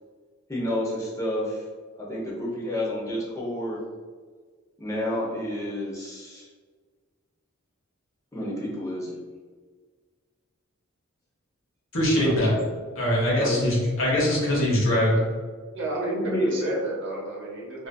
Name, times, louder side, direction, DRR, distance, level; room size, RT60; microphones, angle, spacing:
voice 1, 0.5-1.6 2.0-3.8 4.8-6.5 8.3-9.2 12.2-12.6 13.4-13.7 16.2-16.7, left 1 dB, 15° left, -5 dB, 0.6 m, -29 dB
voice 2, 11.9-12.6 13.0-15.2, left 1 dB, 65° left, -4 dB, 0.9 m, -22 dB
voice 3, 15.7-17.9, right 1 dB, 55° right, -3 dB, 0.6 m, -30 dB
2.5 x 2.4 x 2.2 m, 1.5 s
head